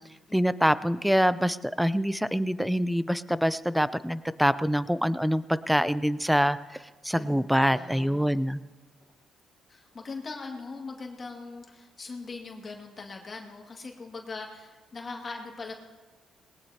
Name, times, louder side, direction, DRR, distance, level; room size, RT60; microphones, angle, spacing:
voice 1, 0.3-8.6, equal, ahead, 15 dB, 0.5 m, -25 dB
voice 2, 7.1-8.4 9.7-15.7, left 3 dB, 35° left, 0 dB, 2.0 m, -41 dB
20.5 x 18.5 x 2.8 m, 1.3 s
cardioid pair, 90°, 0 cm